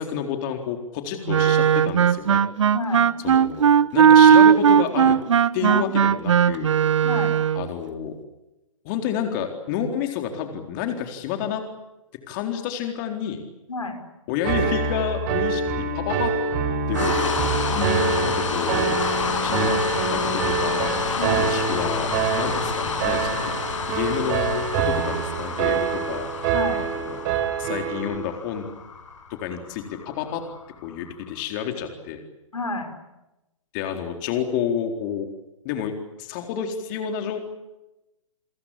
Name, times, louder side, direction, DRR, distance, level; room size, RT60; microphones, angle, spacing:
voice 1, 0.0-2.4 3.2-5.2 5.5-6.7 7.5-8.2 8.8-11.6 12.3-13.4 14.3-16.3 16.9-17.4 18.2-19.0 19.4-19.8 20.1-23.6 23.9-26.3 26.8-27.2 27.6-28.6 29.3-30.4 30.8-32.2 33.7-35.3 35.6-35.9 36.2-37.4, left 8 dB, 40° left, 4 dB, 4.2 m, -29 dB
Wind instrument woodwind instrument, 1.3-7.7, right 8 dB, 65° right, 1.0 m, -17 dB
voice 2, 2.7-3.1 5.6-5.9 7.0-7.3 13.7-14.0 17.7-18.3 21.2-21.4 26.5-26.8 32.5-32.9, left 4 dB, 85° left, 6 dB, 5.6 m, -30 dB
Piano, 14.4-28.2, right 6 dB, 40° right, 5.3 m, -26 dB
sound 1, 16.9-31.0, left 5 dB, 70° left, 8.0 m, -29 dB
29.5 x 22.5 x 8.7 m, 0.96 s
figure-of-eight pair, 125°, 17 cm